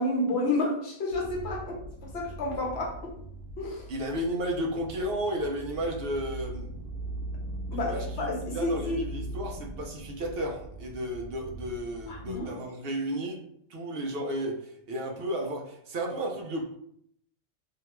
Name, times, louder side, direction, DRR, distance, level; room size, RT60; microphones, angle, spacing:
voice 1, 0.0-3.1 3.6-3.9 7.7-9.0 12.1-12.5, left 2 dB, 60° left, -2 dB, 1.0 m, -30 dB
sound 1, 1.1-12.4, right 2 dB, 85° right, 0.9 m, -40 dB
voice 2, 3.9-6.7 7.7-13.4 13.7-16.8, right 1 dB, 60° right, 1 dB, 0.7 m, -33 dB
2.8 x 2.2 x 2.9 m, 0.70 s
omnidirectional pair, 1.3 m